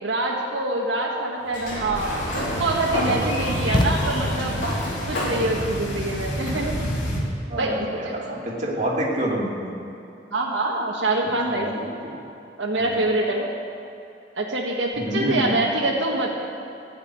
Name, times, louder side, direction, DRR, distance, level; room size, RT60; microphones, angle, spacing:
voice 1, 0.0-4.6 5.1-6.7 7.6-8.4 10.3-11.9 12.6-13.5 14.4-16.3, right 2 dB, 90° right, -1 dB, 1.6 m, -25 dB
Sliding door, 1.4-7.1, equal, 45° left, 3.6 m, -29 dB
sound 1, 1.9-7.2, equal, 85° left, 2.6 m, -31 dB
sound 2, 3.7-4.7, left 1 dB, 25° left, 0.6 m, -25 dB
voice 2, 7.5-9.6 11.4-12.2 12.8-13.0 14.9-15.6, right 1 dB, 40° right, -4 dB, 2.5 m, -28 dB
15.5 x 6.0 x 9.5 m, 2.8 s
head